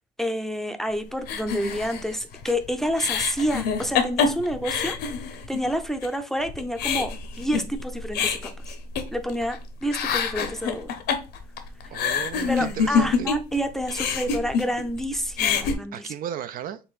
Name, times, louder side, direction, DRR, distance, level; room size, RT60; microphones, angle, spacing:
voice 1, 0.2-5.0 5.5-8.5 9.1-10.9 12.5-16.1, equal, ahead, 0.5 m, -28 dB
sound 1, 1.3-5.7 6.0-6.1 6.5-9.6 9.8-13.6 13.8-15.0 15.3-15.7, left 6 dB, 75° left, 0.8 m, -26 dB
voice 2, 11.9-13.3 15.9-16.8, right 10 dB, 55° right, 0.4 m, -35 dB
5.5 x 3.4 x 2.4 m
cardioid pair, 110°, 17 cm